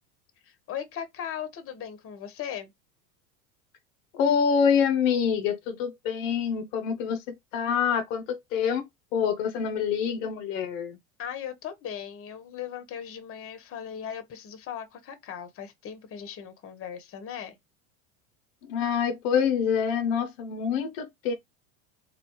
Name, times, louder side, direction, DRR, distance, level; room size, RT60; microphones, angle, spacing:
voice 1, 0.4-2.7 11.2-17.6, left 9 dB, 35° left, 0.9 m, -38 dB
voice 2, 4.1-11.0 18.7-21.3, left 7 dB, 70° left, 0.7 m, -26 dB
3.8 x 2.2 x 2.9 m
hypercardioid pair, 95°, 41 cm